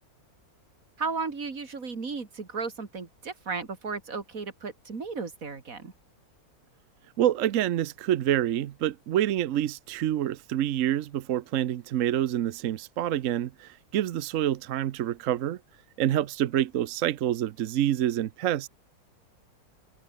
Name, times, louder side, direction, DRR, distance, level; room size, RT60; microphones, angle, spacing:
voice 1, 1.0-5.9, right 4 dB, 50° right, 2.9 m, -34 dB
voice 2, 7.2-15.6 16.0-18.7, right 12 dB, 65° right, 0.8 m, -27 dB
omnidirectional pair, 1.9 m